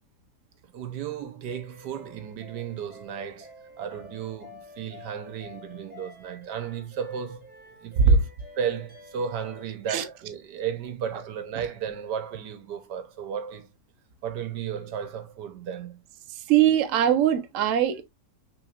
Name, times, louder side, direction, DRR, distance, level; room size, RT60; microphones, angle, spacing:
voice 1, 0.7-7.5 7.8-8.3 8.6-13.7 14.2-16.0, right 8 dB, 75° right, 1.4 m, -34 dB
sound 1, 1.5-9.7, left 2 dB, 5° right, 1.1 m, -49 dB
voice 2, 16.3-18.0, right 8 dB, 60° right, 0.9 m, -21 dB
6.1 x 3.5 x 2.4 m
omnidirectional pair, 1.8 m